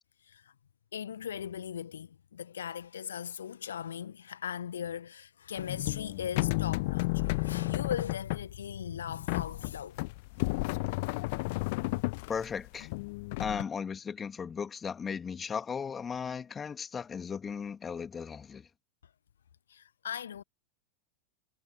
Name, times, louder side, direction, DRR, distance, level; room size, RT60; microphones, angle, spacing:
voice 1, 0.9-10.0 19.7-20.4, left 8 dB, 65° left, 1.5 m, -39 dB
sound 1, 5.6-13.6, left 25 dB, 50° left, 0.7 m, -32 dB
voice 2, 12.3-12.9 13.4-18.7, left 6 dB, 20° left, 2.8 m, -36 dB
figure-of-eight pair, 90°, 0 cm